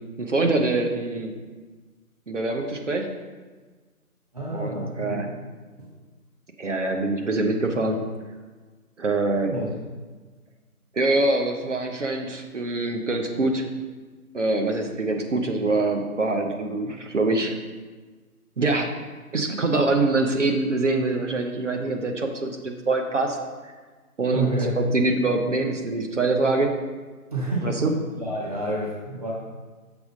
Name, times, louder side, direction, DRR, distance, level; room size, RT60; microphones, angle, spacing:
voice 1, 0.2-1.3 2.3-3.1 4.5-5.3 6.6-8.0 9.0-9.6 10.9-13.7 14.3-17.5 18.6-18.9 19.3-23.4 23.6-23.7 24.2-24.5 24.8-26.7 27.6-28.0, right 2 dB, 55° right, 4 dB, 1.0 m, -24 dB
voice 2, 4.3-5.2 5.8-5.9 9.4-9.7 24.3-24.7 27.3-27.8 28.2-29.3, right 2 dB, 25° right, -4 dB, 0.8 m, -28 dB
7.1 x 4.7 x 5.1 m, 1.4 s
figure-of-eight pair, 165°, 45 cm